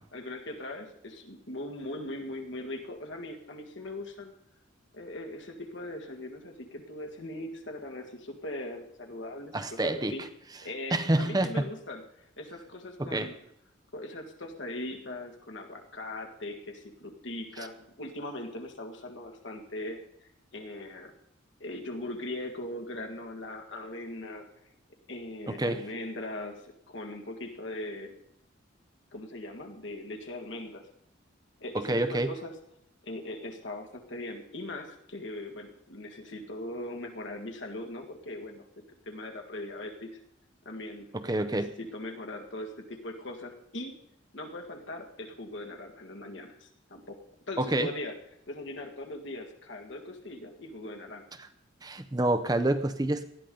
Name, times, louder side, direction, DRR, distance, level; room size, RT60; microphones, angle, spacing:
voice 1, 0.1-4.3 4.9-10.2 10.6-12.0 12.4-13.4 13.9-20.0 20.5-21.1 21.6-24.5 25.1-28.1 29.1-30.9 31.6-32.6 33.0-38.7 39.1-40.1 40.7-41.1 41.5-44.0 44.3-47.2 47.5-48.2 48.5-51.3, left 1 dB, 70° left, 3 dB, 1.9 m, -40 dB
voice 2, 9.5-10.2 10.9-11.7 13.0-13.3 25.5-25.8 31.7-32.3 41.1-41.7 47.6-47.9 51.8-53.2, right 1 dB, 20° right, 10 dB, 0.7 m, -27 dB
19.0 x 12.5 x 3.9 m, 0.77 s
head